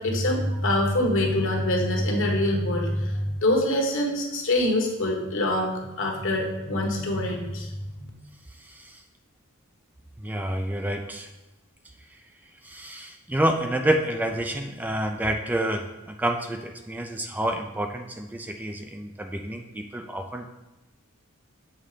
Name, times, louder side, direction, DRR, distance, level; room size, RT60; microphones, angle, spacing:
voice 1, 0.0-8.1, left 1 dB, 65° left, 1 dB, 1.4 m, -25 dB
voice 2, 8.6-9.0 10.2-11.3 12.6-20.5, right 1 dB, 10° right, 5 dB, 0.3 m, -28 dB
7.4 x 3.9 x 5.0 m, 1.0 s
head